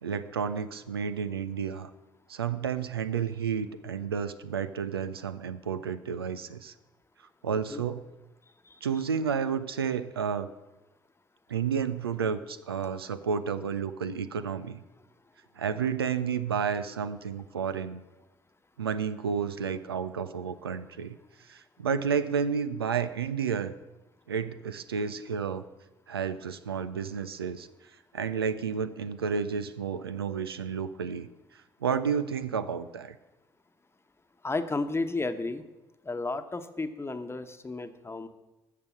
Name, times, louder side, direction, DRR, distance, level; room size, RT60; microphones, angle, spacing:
voice 1, 0.0-1.9 2.3-6.7 7.4-8.0 8.8-10.5 11.5-14.8 15.6-18.0 18.8-21.2 21.5-23.7 24.3-25.6 26.1-27.7 28.1-31.3 31.8-33.1, right 6 dB, 90° right, 13 dB, 0.4 m, -31 dB
voice 2, 34.4-35.6 36.0-38.3, left 3 dB, 20° left, 9 dB, 1.0 m, -33 dB
13.5 x 6.6 x 6.2 m, 1.0 s
figure-of-eight pair, 45°, 12 cm